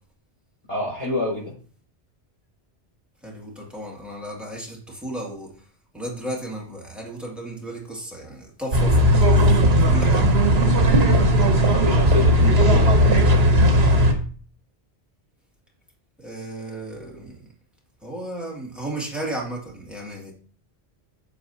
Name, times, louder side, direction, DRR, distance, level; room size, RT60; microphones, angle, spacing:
voice 1, 0.7-1.5 11.7-13.2, left 2 dB, 35° left, 4.3 m, -28 dB
voice 2, 3.2-5.5 5.9-9.3 9.6-10.3 16.2-17.4 18.0-20.3, right 1 dB, ahead, 2.2 m, -34 dB
sound 1, 8.7-14.1, equal, 70° right, 1.4 m, -16 dB
9.2 x 6.8 x 2.8 m
omnidirectional pair, 1.1 m